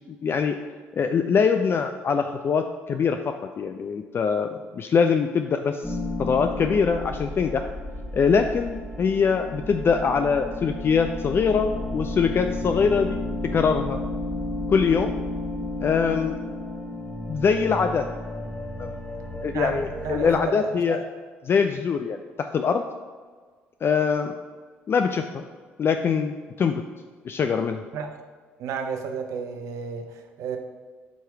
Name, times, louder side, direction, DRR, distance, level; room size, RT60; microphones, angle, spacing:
voice 1, 0.2-0.5 1.0-3.2 3.6-4.5 4.7-7.7 8.1-13.3 13.5-14.0 14.7-15.1 15.8-16.4 17.3-18.1 18.8-18.9 19.4-21.0 21.5-22.8 23.8-24.3 24.9-25.4 25.8-26.8 27.2-27.8, left 6 dB, 40° left, 6 dB, 0.4 m, -23 dB
sound 1, 5.8-20.5, left 1 dB, 5° left, 0.8 m, -32 dB
voice 2, 19.5-21.0 27.9-28.1 28.6-30.6, right 6 dB, 65° right, 4 dB, 0.7 m, -32 dB
8.0 x 3.1 x 4.5 m, 1.5 s
hypercardioid pair, 55°, 6 cm